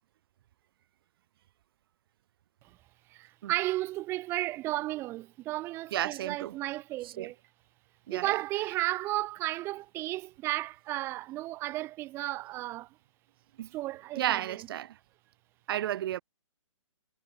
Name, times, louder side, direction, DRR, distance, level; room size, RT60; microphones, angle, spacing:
voice 1, 3.1-7.4 8.1-12.9 13.7-14.7, right 17 dB, 15° right, 0.4 m, -34 dB
voice 2, 5.9-6.5 7.0-7.3 8.1-8.3 13.6-13.7 14.2-15.0 15.7-16.2, right 12 dB, 45° right, 1.7 m, -32 dB
figure-of-eight pair, 135°, 17 cm